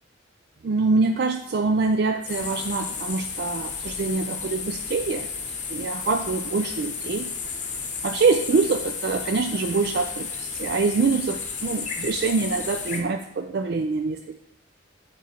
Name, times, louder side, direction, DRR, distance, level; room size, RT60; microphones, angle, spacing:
voice 1, 0.6-5.3 5.7-7.3 8.0-14.4, right 4 dB, 55° right, 7 dB, 0.4 m, -25 dB
sound 1, 2.2-13.0, left 5 dB, 40° left, 0.9 m, -33 dB
8.4 x 3.9 x 4.3 m, 0.73 s
head